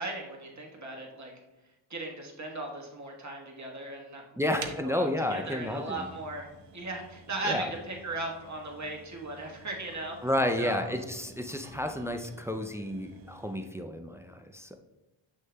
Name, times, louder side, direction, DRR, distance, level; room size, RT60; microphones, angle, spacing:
voice 1, 0.0-1.3 1.9-10.2 10.6-10.8, right 2 dB, 35° right, 0 dB, 1.3 m, -37 dB
voice 2, 4.4-6.1 7.4-7.7 10.2-14.8, left 1 dB, 5° right, 5 dB, 0.3 m, -31 dB
sound 1, 4.6-13.7, right 5 dB, 60° right, 0.7 m, -50 dB
7.5 x 6.3 x 2.2 m, 1.0 s
wide cardioid pair, 115°, 48 cm